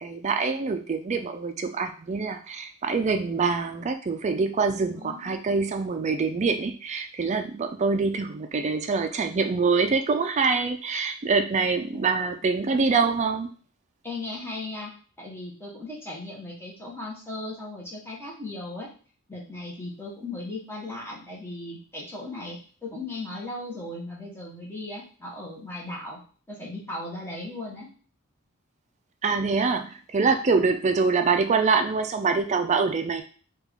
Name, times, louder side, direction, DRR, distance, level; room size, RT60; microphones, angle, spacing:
voice 1, 0.0-13.5 29.2-33.2, right 4 dB, 35° right, 7 dB, 0.4 m, -25 dB
voice 2, 4.9-5.5 11.9-12.0 14.0-14.9 15.2-18.9 19.3-26.2 26.5-27.9, left 2 dB, 10° left, -4 dB, 1.0 m, -37 dB
3.6 x 2.4 x 3.4 m, 0.40 s
head